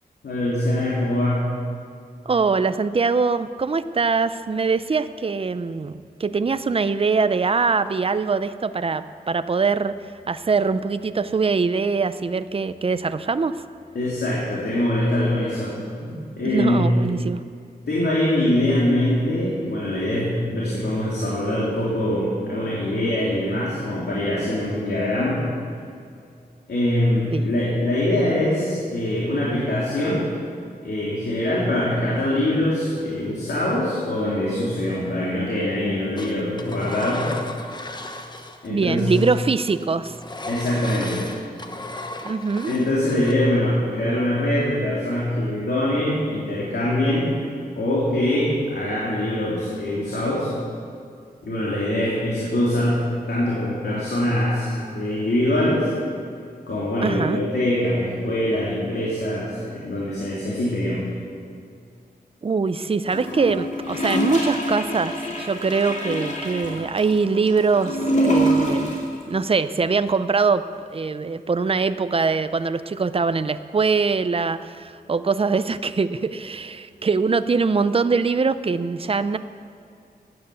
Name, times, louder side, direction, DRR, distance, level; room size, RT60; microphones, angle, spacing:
voice 1, 0.2-1.4 13.9-15.7 16.0-16.9 17.9-25.4 26.7-30.2 30.8-37.3 38.6-39.1 40.5-41.2 42.7-47.3 47.8-50.5 51.4-53.0 53.3-55.9 56.7-61.0, left 1 dB, 85° left, -7 dB, 3.1 m, -23 dB
voice 2, 2.3-10.0 10.3-13.5 16.4-17.4 27.3-27.4 38.7-40.2 42.2-42.7 57.0-57.4 62.4-79.4, right 4 dB, 35° right, 12 dB, 0.5 m, -23 dB
Engine, 36.2-38.7 39.0-43.3, left 2 dB, 25° left, 1.0 m, -36 dB
Gurgling / Toilet flush, 63.1-69.1 69.4-69.5, equal, 45° left, 2.8 m, -25 dB
16.5 x 10.0 x 6.9 m, 2.4 s
wide cardioid pair, 120°, 17 cm